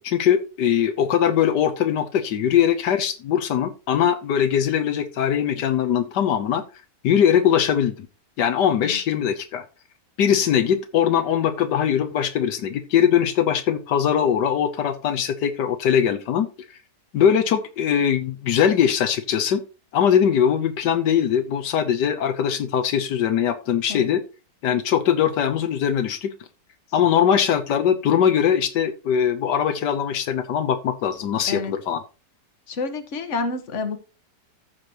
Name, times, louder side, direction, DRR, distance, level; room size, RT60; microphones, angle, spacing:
voice 1, 0.0-6.6 7.0-8.1 8.4-9.6 10.2-16.5 17.1-19.6 19.9-24.2 24.6-26.3 26.9-32.0, left 8 dB, 85° left, 8 dB, 1.5 m, -21 dB
voice 2, 32.7-34.0, left 3 dB, 45° left, 7 dB, 1.6 m, -28 dB
14.5 x 5.9 x 3.0 m, 0.32 s
omnidirectional pair, 1.8 m